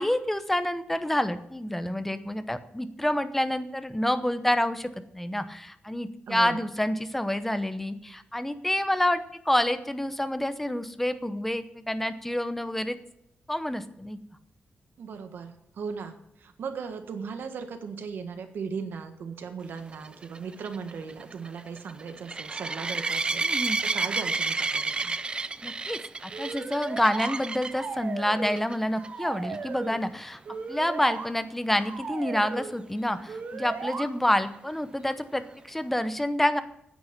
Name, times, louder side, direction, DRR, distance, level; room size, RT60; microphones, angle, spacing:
voice 1, 0.0-13.0 13.5-14.2 23.4-23.8 25.6-30.4 30.7-36.6, left 1 dB, 5° left, 10 dB, 0.8 m, -28 dB
voice 2, 6.3-6.7 15.0-23.5 23.8-25.1, right 5 dB, 75° right, 7 dB, 1.4 m, -37 dB
sound 1, 19.9-27.9 28.4-28.8 29.0-29.1 29.5-29.6 33.2-33.3, right 4 dB, 25° right, 0.4 m, -31 dB
sound 2, 26.3-27.4 27.7-28.7 28.9-30.0 30.5-31.3 31.7-32.7 33.3-34.1, right 4 dB, 55° right, 1.6 m, -36 dB
10.0 x 8.6 x 6.8 m, 0.79 s
wide cardioid pair, 130°, 4 cm